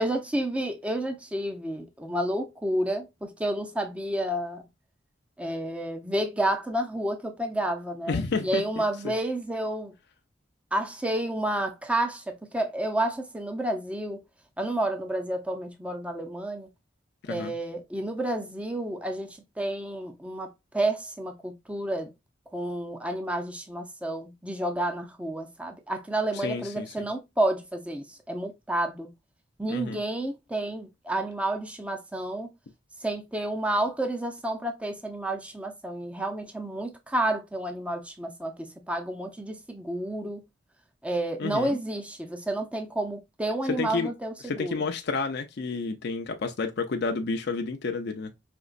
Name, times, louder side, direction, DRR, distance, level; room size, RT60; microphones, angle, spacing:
voice 1, 0.0-4.6 5.4-9.9 10.7-14.2 14.6-16.7 17.3-22.1 22.5-29.1 29.6-32.5 33.0-40.4 41.0-44.8, right 1 dB, 5° right, 0.6 m, -30 dB
voice 2, 8.1-9.1 17.2-17.5 26.3-27.1 29.7-30.0 41.4-41.8 43.6-44.1 44.4-48.3, left 4 dB, 60° left, 0.5 m, -30 dB
5.1 x 2.9 x 2.4 m
head